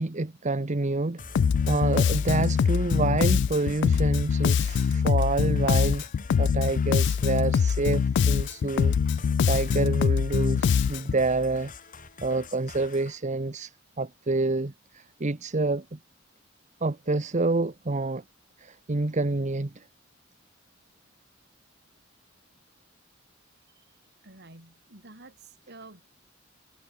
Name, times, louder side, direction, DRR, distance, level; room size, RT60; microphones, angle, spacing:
voice 1, 0.0-6.1 6.4-11.7 12.2-16.0 16.8-18.2 18.6-19.8, right 3 dB, 35° right, 0.9 m, -28 dB
sound 1, 1.2-13.2, left 3 dB, 40° left, 5.2 m, -45 dB
Bass guitar, 1.3-11.2, left 6 dB, 60° left, 0.3 m, -23 dB
voice 2, 24.2-26.0, right 2 dB, 55° right, 4.9 m, -49 dB
head